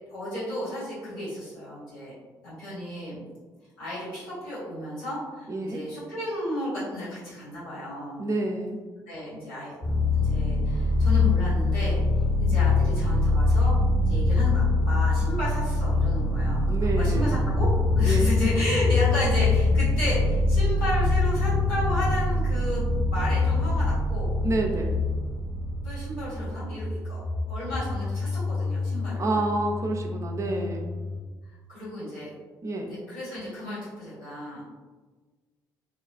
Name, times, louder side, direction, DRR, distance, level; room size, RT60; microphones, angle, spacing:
voice 1, 0.1-2.1 2.4-3.2 3.8-8.2 9.1-9.7 10.2-12.0 12.4-13.7 14.1-16.6 17.0-22.8 23.1-24.3 25.8-27.2 27.5-29.5 31.7-32.3 32.8-34.7, left 1 dB, 75° left, -10 dB, 1.4 m, -33 dB
voice 2, 5.5-5.8 8.2-8.8 16.7-17.4 18.0-18.3 24.4-25.0 29.2-30.9 32.6-32.9, right 2 dB, 30° right, 2 dB, 0.4 m, -28 dB
sound 1, 9.8-26.5, left 3 dB, 50° left, 0.8 m, -24 dB
sound 2, 12.0-31.2, equal, 10° right, 0.8 m, -33 dB
3.0 x 2.3 x 2.5 m, 1.4 s
figure-of-eight pair, 45°, 11 cm